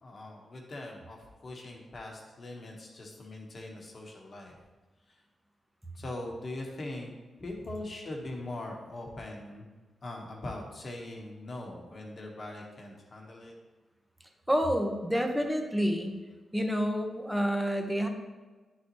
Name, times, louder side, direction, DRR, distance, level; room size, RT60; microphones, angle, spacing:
voice 1, 0.0-4.6 5.1-5.2 5.9-7.1 7.4-9.7 10.0-13.5, left 2 dB, 50° left, 0 dB, 1.3 m, -41 dB
voice 2, 14.5-16.2 16.5-18.1, equal, 5° right, 3 dB, 1.2 m, -28 dB
9.6 x 4.1 x 3.1 m, 1.3 s
supercardioid pair, 40°, 0 cm